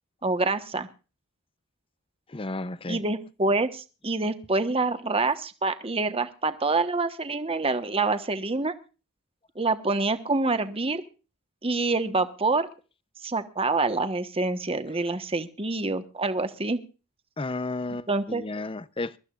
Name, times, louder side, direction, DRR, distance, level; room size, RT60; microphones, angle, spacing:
voice 1, 0.2-0.9 2.9-8.7 9.5-11.0 11.6-12.7 13.2-16.8 18.1-18.4, right 3 dB, 25° right, 1.2 m, -26 dB
voice 2, 2.3-3.0 17.4-19.2, left 2 dB, 25° left, 0.7 m, -33 dB
23.0 x 14.0 x 2.5 m
head